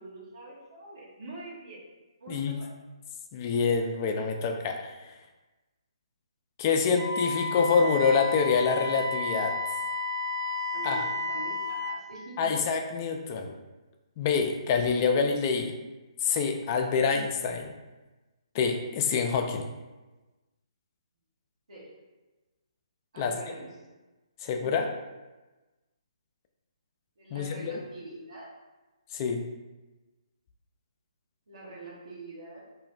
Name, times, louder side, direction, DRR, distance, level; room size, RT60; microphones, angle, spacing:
voice 1, 0.0-1.8 2.2-2.7 10.7-12.5 21.7-22.0 23.1-23.7 24.6-24.8 27.2-28.5 31.5-32.7, right 2 dB, 70° right, -7 dB, 0.9 m, -44 dB
voice 2, 3.3-5.1 6.6-9.6 10.8-11.0 12.4-13.5 14.2-15.7 16.2-17.7 18.5-19.7 23.2-23.3 24.4-24.9 27.3-27.7 29.1-29.4, left 5 dB, 30° left, 4 dB, 0.3 m, -26 dB
Wind instrument woodwind instrument, 7.0-12.0, left 3 dB, 30° right, 0.5 m, -32 dB
2.5 x 2.4 x 3.1 m, 1.1 s
figure-of-eight pair, 140°, 3 cm